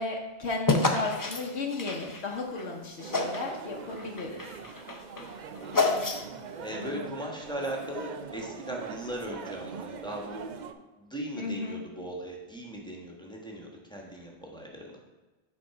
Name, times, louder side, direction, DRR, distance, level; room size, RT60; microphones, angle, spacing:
voice 1, 0.0-4.6 6.8-7.2 11.3-11.9, left 3 dB, 75° left, 1 dB, 1.1 m, -34 dB
sound 1, 0.7-2.7 3.1-3.6 3.9-6.5, left 3 dB, 25° left, 0.5 m, -29 dB
sound 2, 3.0-10.7, right 6 dB, 55° right, 0.5 m, -42 dB
voice 2, 6.6-10.4 11.0-15.0, right 1 dB, 5° left, -1 dB, 1.2 m, -38 dB
7.5 x 4.2 x 5.7 m, 1.2 s
omnidirectional pair, 1.1 m